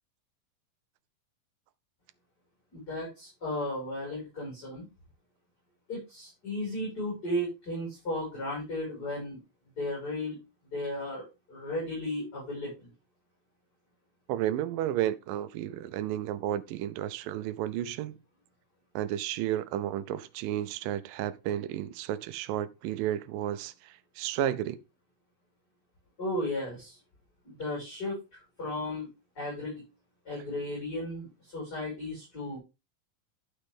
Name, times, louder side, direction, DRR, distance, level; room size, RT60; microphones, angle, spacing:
voice 1, 2.7-4.9 5.9-9.4 9.8-10.4 10.7-12.9 26.2-27.0 27.4-28.1 28.6-29.1 29.4-29.8 30.2-32.6, left 1 dB, 25° left, 6.4 m, -35 dB
voice 2, 14.3-18.2 19.0-24.8, right 12 dB, 85° right, 2.3 m, -32 dB
11.5 x 6.4 x 3.6 m
omnidirectional pair, 4.0 m